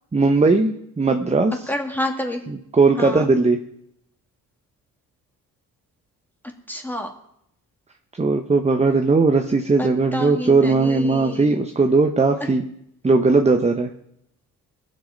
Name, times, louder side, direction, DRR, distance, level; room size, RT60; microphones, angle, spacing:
voice 1, 0.1-1.5 2.7-3.6 8.2-12.6 13.0-13.9, right 3 dB, 15° right, 5 dB, 0.9 m, -18 dB
voice 2, 1.7-2.4 3.0-3.3 6.7-7.1 9.8-11.6 12.4-12.6, left 1 dB, 5° left, 3 dB, 2.3 m, -29 dB
20.5 x 7.8 x 5.2 m, 0.76 s
cardioid pair, 100°, 39 cm